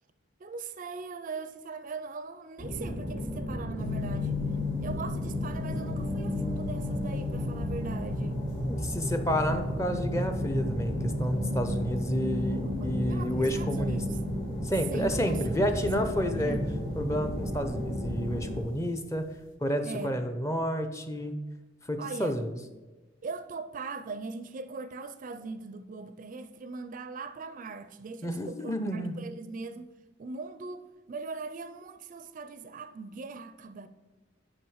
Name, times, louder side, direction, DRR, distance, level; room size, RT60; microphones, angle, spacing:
voice 1, 0.4-4.4 4.8-8.4 12.4-14.2 14.9-16.6 19.8-20.2 22.0-22.4 23.2-29.9 30.2-33.9, right 4 dB, 45° right, 0.4 m, -40 dB
sound 1, 2.6-18.6, equal, 50° left, 2.6 m, -32 dB
sound 2, 3.8-19.5, left 8 dB, 75° left, 1.0 m, -41 dB
voice 2, 8.7-14.0 14.6-16.6 17.0-19.3 19.6-21.3 21.9-22.5 28.2-29.2, equal, 15° left, 0.6 m, -30 dB
6.1 x 5.1 x 6.3 m
head